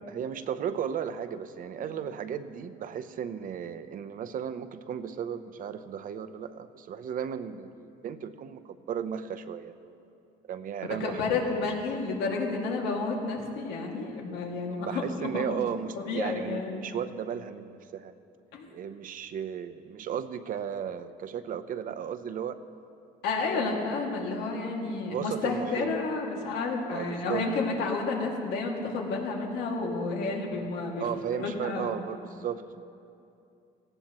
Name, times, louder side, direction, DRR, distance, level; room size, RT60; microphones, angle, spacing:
voice 1, 0.1-10.0 10.5-11.4 14.7-18.1 18.7-22.6 23.5-23.8 25.1-26.0 26.4-26.5 26.9-27.4 31.0-32.8, right 8 dB, 55° right, 11 dB, 0.8 m, -35 dB
voice 2, 11.0-15.4 16.1-16.8 18.5-18.7 23.2-32.0, left 3 dB, 85° left, -1 dB, 2.3 m, -31 dB
18.0 x 16.0 x 3.1 m, 2.6 s
cardioid pair, 110°, 17 cm